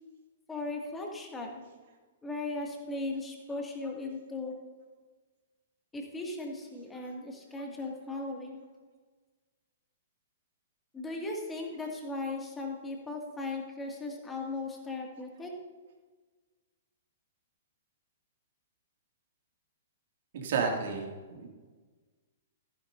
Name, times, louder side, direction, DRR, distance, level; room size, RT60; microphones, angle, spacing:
voice 1, 0.5-1.6 2.2-4.5 5.9-8.6 10.9-15.5, left 2 dB, 10° left, 0 dB, 2.2 m, -37 dB
voice 2, 20.3-21.5, right 5 dB, 55° right, 1 dB, 2.3 m, -31 dB
14.5 x 10.5 x 2.7 m, 1.3 s
figure-of-eight pair, 110°, 0 cm